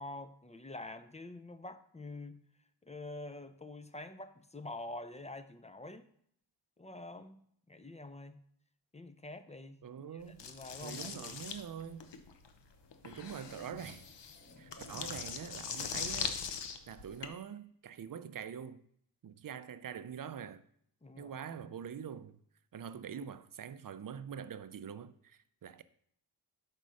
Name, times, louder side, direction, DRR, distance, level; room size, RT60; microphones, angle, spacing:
voice 1, 0.0-2.4 2.8-6.1 6.8-7.4 7.7-8.4 8.9-9.8 10.1-11.4 21.0-21.5, left 2 dB, 15° left, 0.6 m, -46 dB
voice 2, 9.8-10.4 10.8-12.1 13.0-14.0 14.6-16.4 16.9-18.8 19.2-20.6 21.2-22.4 22.7-25.8, right 8 dB, 50° right, 0.5 m, -44 dB
sound 1, 10.4-17.3, left 6 dB, 70° left, 0.8 m, -41 dB
sound 2, 12.7-15.5, equal, 30° left, 2.1 m, -57 dB
5.3 x 4.5 x 6.3 m
cardioid pair, 60°, 44 cm